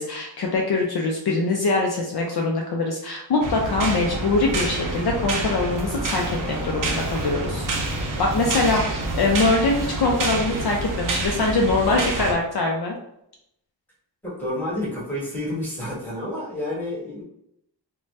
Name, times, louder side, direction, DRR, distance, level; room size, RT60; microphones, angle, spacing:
voice 1, 0.0-7.7 8.0-12.9, left 3 dB, 60° left, 0 dB, 0.5 m, -23 dB
sound 1, 3.4-12.3, right 2 dB, 50° right, 0.6 m, -27 dB
voice 2, 14.2-17.2, left 1 dB, 5° left, -7 dB, 1.3 m, -29 dB
2.7 x 2.2 x 3.1 m, 0.78 s
wide cardioid pair, 100°, 43 cm